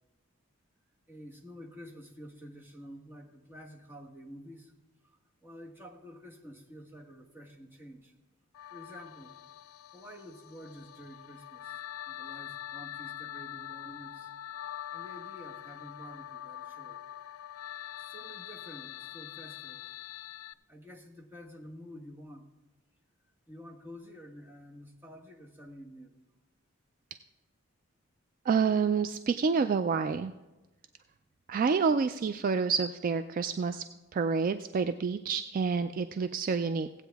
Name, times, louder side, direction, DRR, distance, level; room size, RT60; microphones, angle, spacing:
voice 1, 1.1-4.7 5.4-8.1 8.7-9.3 9.9-11.7 12.1-14.3 14.9-17.0 18.1-19.8 20.7-22.5 23.5-26.2, equal, 10° right, 0 dB, 1.2 m, -49 dB
sound 1, 8.5-20.5, left 12 dB, 80° left, 0.3 m, -44 dB
voice 2, 28.5-30.3 31.5-33.8 34.1-36.9, right 5 dB, 40° right, 10 dB, 0.3 m, -28 dB
16.5 x 8.2 x 3.5 m, 1.1 s
head